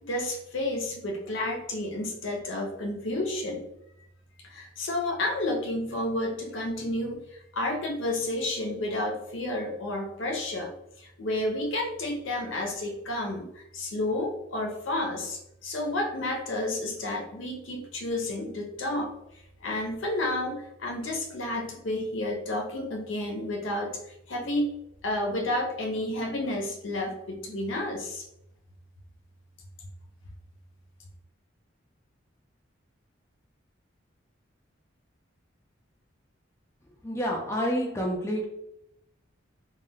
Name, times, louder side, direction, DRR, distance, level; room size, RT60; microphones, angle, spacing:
voice 1, 0.0-3.7 4.4-19.1 19.6-24.7 25.0-28.2, left 1 dB, 75° left, 2 dB, 0.6 m, -31 dB
voice 2, 37.0-38.4, equal, 15° left, -1 dB, 0.4 m, -28 dB
2.2 x 2.1 x 3.4 m, 0.81 s
head